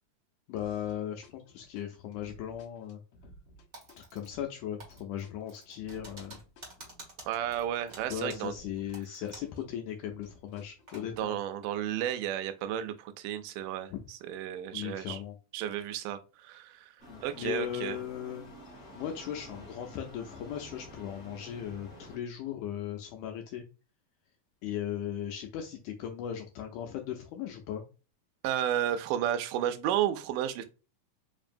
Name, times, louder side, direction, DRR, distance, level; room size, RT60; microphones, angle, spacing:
voice 1, 0.5-3.0 4.0-6.4 8.1-11.4 13.9-14.0 14.7-15.4 17.1-18.4 19.0-23.6 24.6-27.8, left 10 dB, 80° left, 1.9 m, -37 dB
sound 1, 0.6-1.0 1.2-9.0 9.2-11.2, equal, 65° left, 2.1 m, -57 dB
Typing, 3.7-4.5 4.8-9.6 9.9-10.0 10.5-11.1, right 2 dB, 55° right, 0.7 m, -50 dB
voice 2, 7.3-8.5 11.2-15.2 15.5-18.0 28.4-30.7, right 11 dB, 85° right, 2.1 m, -32 dB
sound 2, 17.0-22.2, equal, 20° left, 1.3 m, -49 dB
5.1 x 2.6 x 2.5 m
omnidirectional pair, 3.7 m